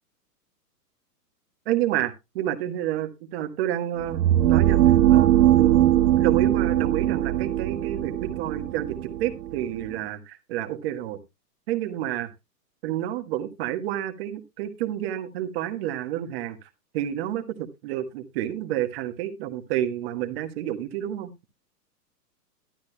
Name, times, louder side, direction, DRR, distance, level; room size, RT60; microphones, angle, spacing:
voice 1, 1.6-4.2 4.5-11.2 11.7-12.3 12.8-16.7 16.9-21.3, right 12 dB, 40° right, 7 dB, 1.4 m, -29 dB
sound 1, 4.0-9.9, right 12 dB, 75° right, 0.8 m, -21 dB
12.0 x 11.5 x 2.2 m, 0.23 s
hypercardioid pair, 145°, 49 cm